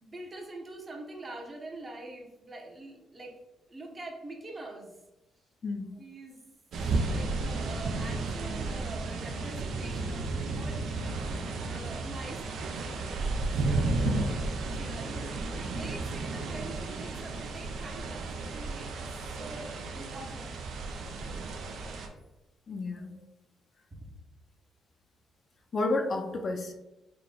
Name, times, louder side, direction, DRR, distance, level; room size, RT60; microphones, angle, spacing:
voice 1, 0.0-3.4 3.7-5.0 6.0-6.4 7.0-10.8 11.6-13.0 13.7-14.3 14.7-20.5 23.0-23.2 23.9-24.2, right 2 dB, 30° right, 1 dB, 0.8 m, -45 dB
voice 2, 5.6-6.0 14.0-14.4 22.7-23.2 25.7-26.7, left 2 dB, 45° left, 3 dB, 0.5 m, -31 dB
sound 1, 6.7-22.1, right 3 dB, 70° right, 0.5 m, -33 dB
3.7 x 2.3 x 3.7 m, 0.99 s
cardioid pair, 90°, 0 cm